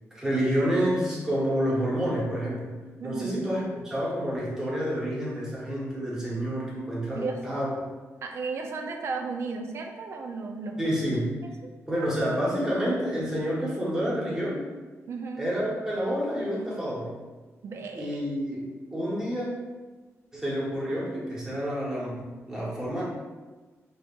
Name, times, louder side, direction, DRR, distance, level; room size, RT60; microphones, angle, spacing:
voice 1, 0.1-2.8 3.0-7.7 10.8-11.3 11.9-14.6 15.4-17.2 17.9-19.5 20.3-23.0, equal, 10° right, -6 dB, 1.0 m, -29 dB
voice 2, 3.0-3.5 7.2-7.4 8.2-11.1 11.6-11.7 15.1-15.5 17.6-18.2, right 4 dB, 55° right, 3 dB, 0.4 m, -34 dB
5.2 x 2.4 x 2.4 m, 1.3 s
wide cardioid pair, 170°, 5 cm